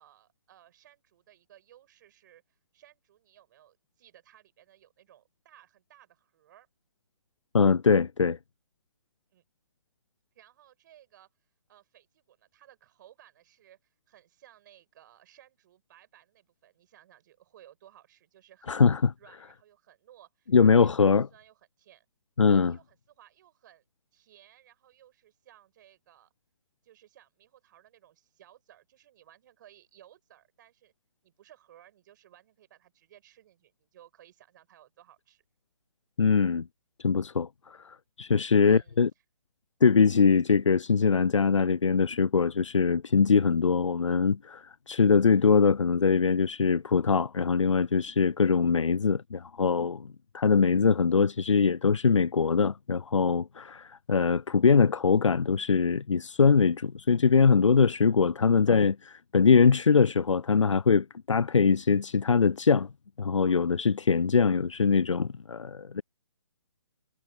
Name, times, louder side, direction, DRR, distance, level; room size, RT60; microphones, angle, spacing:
voice 1, 0.0-6.7 9.3-9.4 10.3-11.3 11.7-18.9 19.2-21.0 21.3-22.1 22.5-23.8 24.1-26.3 26.8-30.9 31.2-35.4 38.6-39.0, right 12 dB, 40° right, 6.2 m, -58 dB
voice 2, 7.5-8.4 18.7-19.1 20.5-21.3 22.4-22.7 36.2-36.7 37.0-39.1 39.8-62.9 63.2-66.0, left 5 dB, 85° left, 0.4 m, -23 dB
figure-of-eight pair, 135°, 15 cm